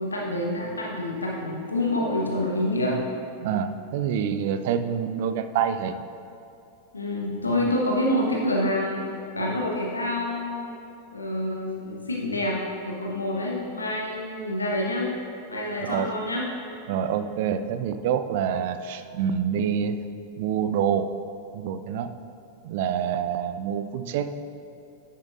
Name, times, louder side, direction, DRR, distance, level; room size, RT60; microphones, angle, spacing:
voice 1, 0.0-3.0 6.9-9.0 9.3-10.7 11.1-15.1 15.5-16.5 23.6-23.7, left 1 dB, 80° left, -2 dB, 1.0 m, -27 dB
voice 2, 3.4-6.0 15.8-16.1 16.9-20.0 20.4-21.1 21.5-22.1 22.6-24.3, right 8 dB, 50° right, 10 dB, 0.4 m, -26 dB
10.0 x 8.2 x 2.5 m, 2.7 s
figure-of-eight pair, 90°, 0 cm